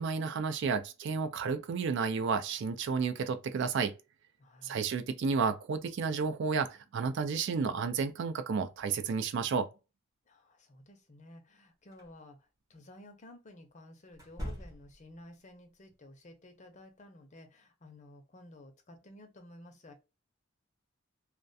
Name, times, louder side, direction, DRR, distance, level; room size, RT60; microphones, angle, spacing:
voice 1, 0.0-3.9 4.6-9.7, right 5 dB, 60° right, 0.3 m, -31 dB
voice 2, 4.4-4.8 10.3-19.9, left 1 dB, 35° left, 0.6 m, -54 dB
sound 1, 11.9-12.1 14.1-15.1, equal, 15° right, 0.7 m, -42 dB
2.3 x 2.2 x 2.6 m
head